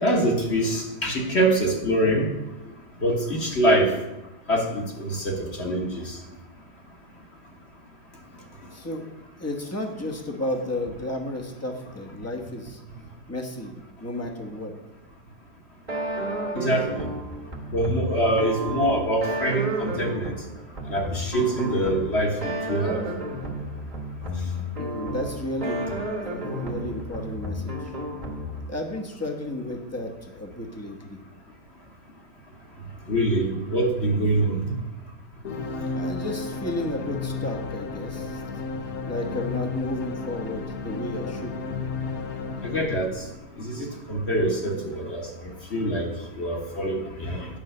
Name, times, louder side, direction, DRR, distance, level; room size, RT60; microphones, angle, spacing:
voice 1, 0.0-2.3 3.0-3.9 4.5-6.0 16.6-17.0 17.7-20.3 20.9-22.3 22.7-23.0 33.1-34.6 42.6-43.1 43.6-45.2 45.7-46.1 46.4-47.5, right 1 dB, 40° left, 0 dB, 1.6 m, -24 dB
voice 2, 8.7-9.1 9.4-12.8 13.3-13.7 14.0-14.7 24.8-25.8 26.2-27.9 28.7-31.2 35.9-38.4 39.0-41.7, left 1 dB, 10° left, 1 dB, 0.9 m, -32 dB
sound 1, 15.9-28.8, equal, 30° right, 1.3 m, -32 dB
sound 2, 35.4-43.9, left 4 dB, 65° left, 1.2 m, -33 dB
9.0 x 5.5 x 6.5 m, 0.99 s
omnidirectional pair, 1.8 m